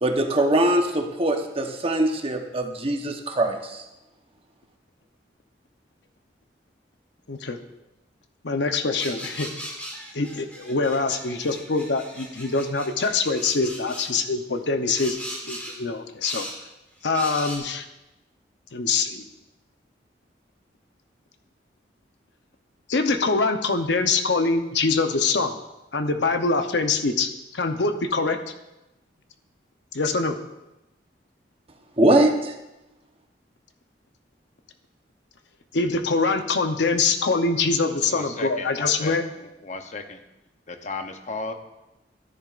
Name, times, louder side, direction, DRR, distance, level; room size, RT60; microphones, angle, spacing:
voice 1, 0.0-3.8 32.0-32.5, right 1 dB, 30° right, 3 dB, 1.0 m, -22 dB
voice 2, 7.3-7.6 8.4-9.5 10.1-15.2 15.5-16.5 17.0-17.9 18.7-19.2 22.9-25.5 25.9-27.3 27.5-28.4 29.9-30.4 35.7-39.2, left 4 dB, 70° left, 7 dB, 0.8 m, -24 dB
sound 1, 9.0-14.1 14.9-15.8 16.2-16.6 17.1-17.6, equal, 10° left, 2.0 m, -38 dB
voice 3, 38.1-39.2 39.4-40.2 40.7-41.5, left 3 dB, 40° left, 6 dB, 0.8 m, -34 dB
13.5 x 10.5 x 2.5 m, 0.97 s
head